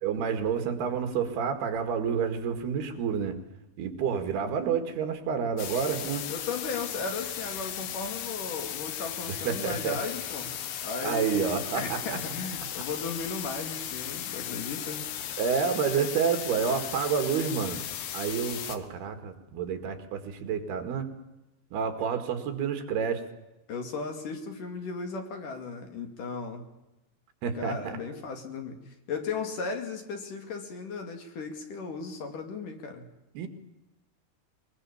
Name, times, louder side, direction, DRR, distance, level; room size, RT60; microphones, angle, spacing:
voice 1, 0.0-3.4 3.8-6.3 9.3-10.0 11.0-12.0 15.4-17.8 18.1-21.1 21.7-23.3 27.4-28.0 33.4-33.5, right 6 dB, 70° right, 7 dB, 3.9 m, -29 dB
sound 1, 5.6-18.8, left 10 dB, 75° left, 3.4 m, -36 dB
voice 2, 6.3-15.1 23.7-26.6 27.5-28.8 29.1-33.0, left 4 dB, 55° left, 5 dB, 3.6 m, -36 dB
23.0 x 22.0 x 7.2 m, 0.94 s
omnidirectional pair, 4.8 m